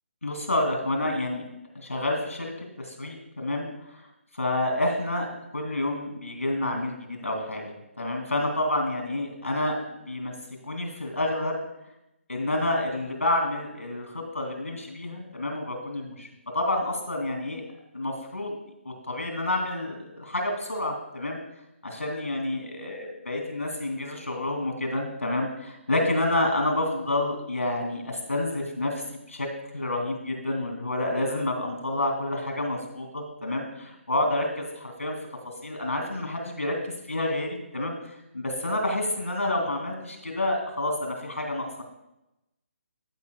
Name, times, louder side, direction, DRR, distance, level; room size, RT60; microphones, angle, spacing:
voice 1, 0.2-1.5 1.7-3.6 4.3-5.3 5.5-10.3 10.6-11.6 12.3-16.3 16.5-17.6 17.9-18.6 18.8-21.4 21.8-29.5 29.7-35.2 35.4-37.9 38.3-41.8, left 1 dB, 75° left, 3 dB, 2.7 m, -29 dB
15.0 x 7.7 x 2.3 m, 0.92 s
figure-of-eight pair, 145°, 7 cm